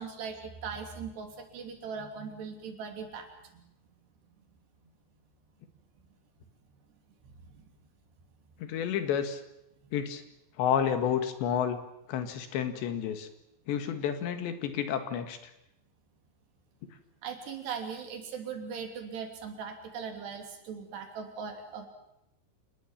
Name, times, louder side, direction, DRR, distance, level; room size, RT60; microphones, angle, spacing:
voice 1, 0.0-3.3 3.5-3.6 7.2-7.6 17.2-21.9, right 6 dB, 70° right, 4 dB, 5.0 m, -39 dB
voice 2, 8.6-9.4 9.9-10.2 10.6-11.8 12.1-13.3 13.7-15.4, left 8 dB, 80° left, 8 dB, 4.0 m, -30 dB
27.0 x 20.0 x 7.3 m, 0.82 s
omnidirectional pair, 5.1 m